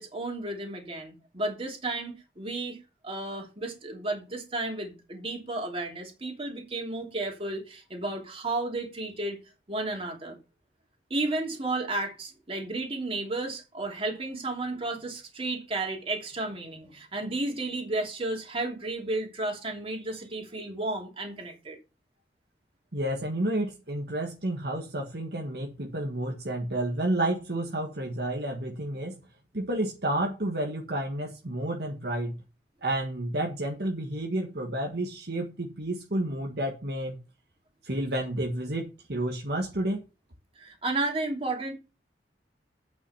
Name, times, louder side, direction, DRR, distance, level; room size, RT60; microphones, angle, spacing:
voice 1, 0.0-2.8 3.0-9.4 9.7-10.4 11.1-21.8 40.6-41.7, right 2 dB, 30° right, 3.1 m, -33 dB
voice 2, 22.9-29.2 29.5-32.4 32.8-37.2 37.8-40.0, right 1 dB, 60° right, 1.6 m, -30 dB
8.9 x 6.2 x 5.7 m
head